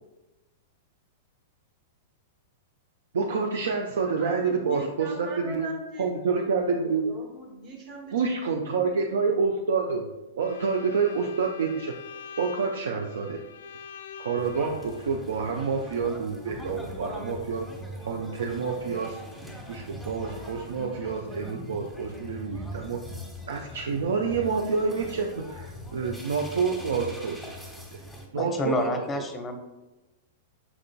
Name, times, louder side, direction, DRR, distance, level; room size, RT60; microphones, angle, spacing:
voice 1, 3.1-5.7 6.0-7.1 8.1-10.1 10.4-11.9 12.4-13.4 14.2-17.7 18.0-19.2 19.7-23.0 23.5-27.5 27.9-28.0 28.3-29.2, right 5 dB, 70° right, 2 dB, 0.4 m, -28 dB
voice 2, 4.0-6.1 6.7-8.3 8.6-9.2, right 3 dB, 45° right, 0 dB, 1.2 m, -41 dB
Bowed string instrument, 10.4-15.1, left 6 dB, 65° left, 0.3 m, -44 dB
sound 1, 14.4-28.3, equal, 10° right, 1.1 m, -41 dB
voice 3, 28.3-29.6, left 1 dB, 20° left, 6 dB, 0.6 m, -29 dB
5.8 x 3.7 x 2.2 m, 1.1 s
figure-of-eight pair, 100°, 0 cm